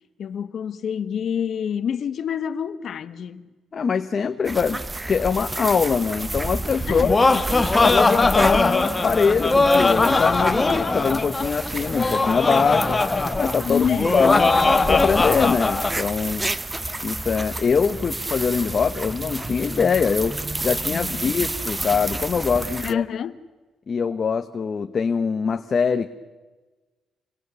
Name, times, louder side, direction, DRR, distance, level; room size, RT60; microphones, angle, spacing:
voice 1, 0.2-3.5 6.9-7.5 13.6-14.3 20.9-21.3 22.8-23.3, left 8 dB, 65° left, 1.4 m, -27 dB
voice 2, 3.7-4.8 5.1-7.2 7.8-13.0 13.3-14.5 14.9-16.5 17.0-23.0 23.9-26.1, left 5 dB, 45° left, 1.1 m, -23 dB
sound 1, 4.4-22.9, right 2 dB, 15° right, 0.9 m, -31 dB
Laughter, 6.8-15.9, left 3 dB, 20° left, 1.6 m, -20 dB
29.0 x 23.0 x 7.0 m
cardioid pair, 105°, 0 cm